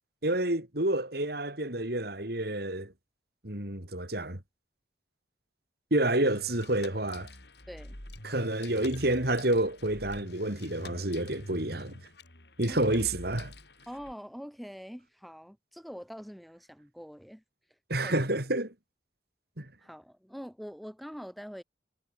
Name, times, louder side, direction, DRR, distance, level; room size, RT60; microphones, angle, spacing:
voice 1, 0.2-2.9 3.4-4.4 5.9-7.3 8.2-12.0 12.6-13.5 17.9-18.7 19.6-19.7, right 1 dB, 55° right, 3.9 m, -29 dB
sound 1, 6.1-14.1, left 1 dB, 60° left, 6.1 m, -46 dB
voice 2, 7.7-8.0 12.7-13.0 13.9-17.4 18.0-18.1 19.8-21.6, equal, ahead, 7.5 m, -44 dB
head